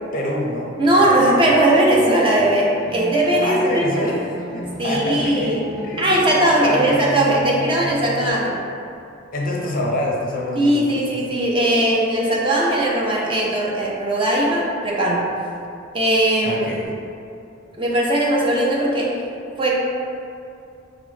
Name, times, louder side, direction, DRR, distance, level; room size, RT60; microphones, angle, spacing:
voice 1, 0.1-0.7 3.4-5.6 5.8-6.0 6.6-7.2 7.7-7.8 9.3-11.1 16.4-16.9, left 1 dB, 45° left, -2 dB, 0.5 m, -26 dB
voice 2, 0.8-3.9 4.8-5.6 6.0-8.6 10.6-15.2 15.9-16.6 17.8-19.1 19.6-19.8, right 1 dB, 25° right, -4 dB, 0.5 m, -19 dB
sound 1, 0.9-8.3, equal, 5° left, 0.9 m, -33 dB
4.8 x 2.0 x 3.1 m, 2.6 s
head